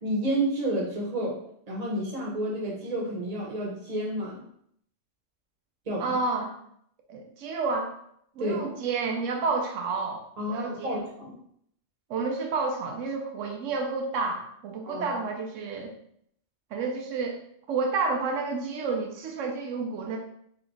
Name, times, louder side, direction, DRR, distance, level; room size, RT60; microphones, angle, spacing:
voice 1, 0.0-1.4 1.7-4.4 5.9-6.2 8.4-8.6 10.4-11.3 14.8-15.1, right 1 dB, 35° right, -2 dB, 1.0 m, -30 dB
voice 2, 6.0-6.5 7.1-7.9 8.4-11.0 12.1-15.9 16.7-17.4 17.7-20.2, right 4 dB, 80° right, 2 dB, 1.0 m, -30 dB
3.2 x 2.9 x 3.8 m, 0.70 s
omnidirectional pair, 1.3 m